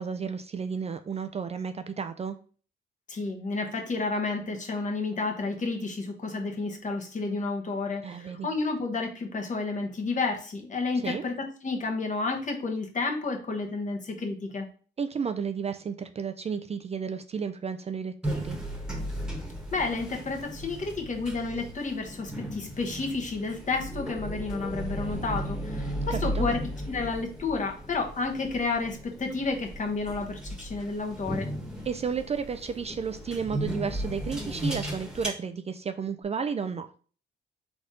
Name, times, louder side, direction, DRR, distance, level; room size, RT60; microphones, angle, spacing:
voice 1, 0.0-2.4 8.0-8.5 11.0-11.2 15.0-18.6 26.1-26.5 31.9-36.9, right 6 dB, 30° right, 9 dB, 0.4 m, -32 dB
voice 2, 3.1-11.3 11.6-14.7 19.7-26.6 26.9-31.5, left 3 dB, 40° left, 3 dB, 1.3 m, -31 dB
sound 1, 18.2-35.3, equal, 5° right, 1.3 m, -36 dB
4.0 x 3.5 x 3.8 m, 0.40 s
cardioid pair, 90°, 20 cm